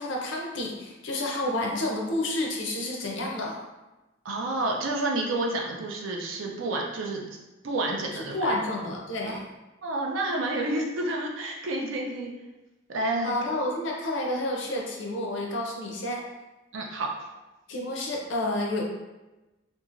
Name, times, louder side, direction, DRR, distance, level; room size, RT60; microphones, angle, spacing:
voice 1, 0.0-3.6 8.1-9.5 13.2-16.2 17.7-18.8, left 1 dB, 70° left, -1 dB, 0.6 m, -30 dB
voice 2, 4.2-7.2 7.6-8.6 9.2-9.4 9.8-12.3 12.9-13.4 16.7-17.1, right 2 dB, 85° right, 0 dB, 0.5 m, -29 dB
2.9 x 2.4 x 2.5 m, 1.1 s
head